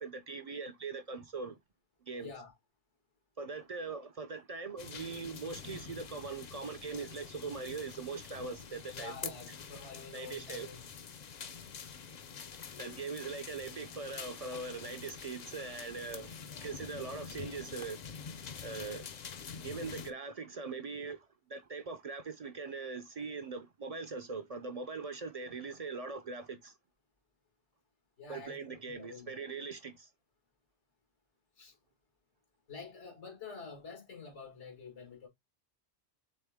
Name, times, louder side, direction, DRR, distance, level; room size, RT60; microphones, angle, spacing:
voice 1, 0.0-1.6 2.1-2.3 3.4-9.3 10.1-10.7 12.8-18.0 18.6-19.1 19.6-26.7 28.3-30.1, right 4 dB, 45° right, 0.5 m, -41 dB
voice 2, 2.2-2.5 8.9-10.9 28.2-28.6 28.9-29.5 31.6-31.8 32.7-35.3, left 5 dB, 85° left, 2.0 m, -48 dB
sound 1, 4.8-20.1, left 6 dB, 50° left, 0.5 m, -46 dB
4.4 x 3.5 x 3.4 m
omnidirectional pair, 1.1 m